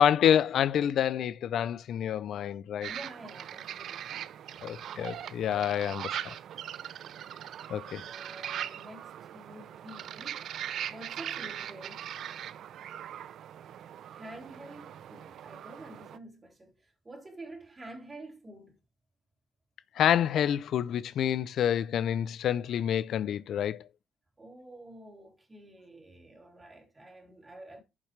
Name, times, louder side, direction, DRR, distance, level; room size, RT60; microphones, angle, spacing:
voice 1, 0.0-2.9 4.6-6.3 7.7-8.0 20.0-23.9, left 9 dB, 70° left, 0.5 m, -27 dB
voice 2, 2.8-4.1 4.5-4.7 8.0-10.5 10.9-12.1 14.1-18.7 24.4-27.8, right 1 dB, 25° right, 3.7 m, -48 dB
sound 1, 2.8-16.2, right 10 dB, 70° right, 0.6 m, -40 dB
11.5 x 7.3 x 3.3 m
cardioid pair, 90°, 0 cm